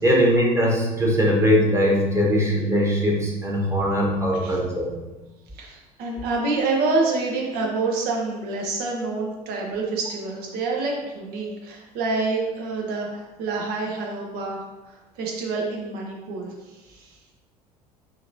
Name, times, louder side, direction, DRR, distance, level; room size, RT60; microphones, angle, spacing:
voice 1, 0.0-4.9, equal, 15° right, -2 dB, 1.2 m, -20 dB
voice 2, 5.5-17.3, right 3 dB, 55° right, 0 dB, 1.0 m, -27 dB
5.4 x 3.0 x 2.7 m, 1.1 s
figure-of-eight pair, 60°, 19 cm